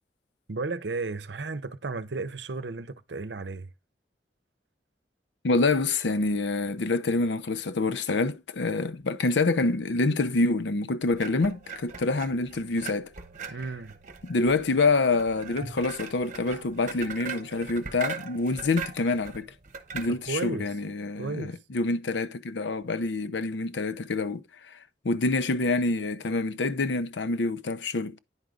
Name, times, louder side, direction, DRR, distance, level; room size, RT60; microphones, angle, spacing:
voice 1, 0.5-3.7 13.5-14.0 20.3-20.7 21.2-21.6, right 3 dB, 70° right, 0.8 m, -33 dB
voice 2, 5.4-13.1 14.2-19.5 19.9-24.8 25.0-28.2, left 3 dB, 80° left, 0.7 m, -26 dB
sound 1, 11.2-20.5, right 5 dB, 45° right, 1.1 m, -40 dB
9.9 x 4.8 x 3.8 m
head